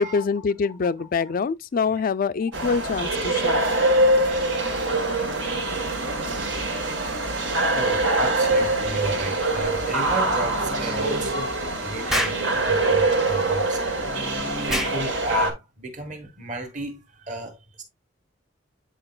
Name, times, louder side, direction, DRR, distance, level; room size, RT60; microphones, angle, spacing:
voice 1, 0.0-3.8, left 5 dB, 50° left, 0.4 m, -25 dB
sound 1, 2.5-15.5, right 2 dB, 75° right, 1.5 m, -24 dB
voice 2, 7.7-14.0 14.7-17.8, right 1 dB, 45° right, 1.7 m, -34 dB
sound 2, 10.4-11.4 14.1-15.0, equal, 20° right, 1.1 m, -36 dB
Explosion, 12.1-12.5 14.7-15.0, equal, ahead, 0.7 m, -25 dB
8.8 x 4.5 x 2.3 m
head